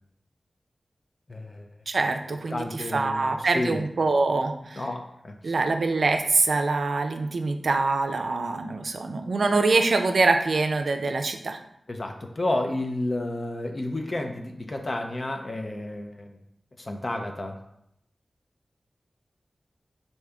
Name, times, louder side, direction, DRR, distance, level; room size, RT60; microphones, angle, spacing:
voice 1, 1.3-1.7 2.5-3.9 4.8-5.5 11.9-16.4 16.8-17.6, left 1 dB, 40° left, 3 dB, 0.5 m, -31 dB
voice 2, 1.9-4.8 5.4-11.6, right 3 dB, 75° right, 6 dB, 0.4 m, -24 dB
4.8 x 2.7 x 3.3 m, 0.75 s
wide cardioid pair, 85°, 0 cm